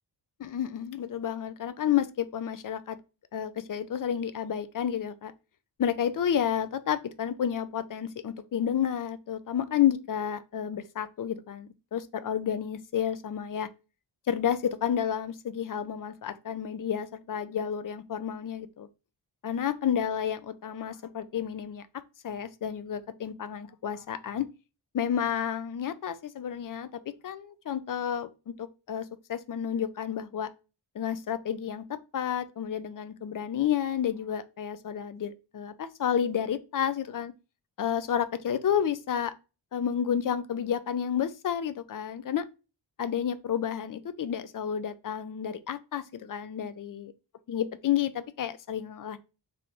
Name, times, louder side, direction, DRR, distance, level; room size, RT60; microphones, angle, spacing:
voice 1, 0.4-3.0 3.3-5.3 5.8-13.7 14.3-18.9 19.4-21.8 22.2-24.5 24.9-26.9 27.2-30.5 31.0-37.3 37.8-39.3 39.7-42.4 43.0-47.1 47.5-49.2, left 9 dB, 45° left, 0.4 m, -30 dB
3.7 x 3.4 x 3.0 m
wide cardioid pair, 105°, 46 cm